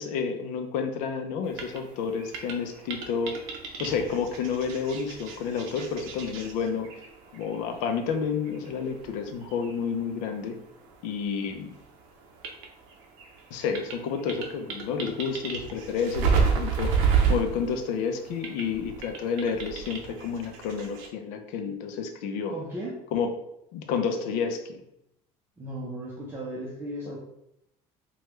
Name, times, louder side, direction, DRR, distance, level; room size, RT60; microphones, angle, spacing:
voice 1, 0.0-3.4 3.8-6.9 7.3-10.6 11.0-11.8 13.5-16.9 17.3-22.5 23.1-23.3 23.7-24.8, left 6 dB, 75° left, 6 dB, 0.5 m, -30 dB
sound 1, 1.5-11.5 11.7-21.1, right 6 dB, 90° right, 0.6 m, -31 dB
voice 2, 22.5-23.0 25.6-27.2, right 1 dB, 15° right, -5 dB, 0.6 m, -36 dB
3.2 x 2.3 x 3.0 m, 0.81 s
cardioid pair, 140°, 13 cm